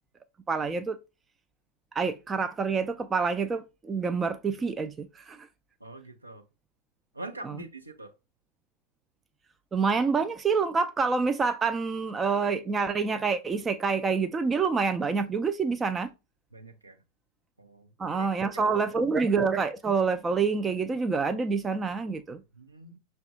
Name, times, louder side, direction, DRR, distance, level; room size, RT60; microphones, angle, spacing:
voice 1, 0.5-1.0 1.9-5.5 7.4-7.6 9.7-16.1 18.0-22.4, right 5 dB, 15° right, 0.3 m, -27 dB
voice 2, 5.8-6.4 7.1-8.1 16.5-17.0 17.6-18.6 22.5-23.0, right 2 dB, 85° right, 0.6 m, -44 dB
5.9 x 2.2 x 2.6 m
figure-of-eight pair, 90°, 0 cm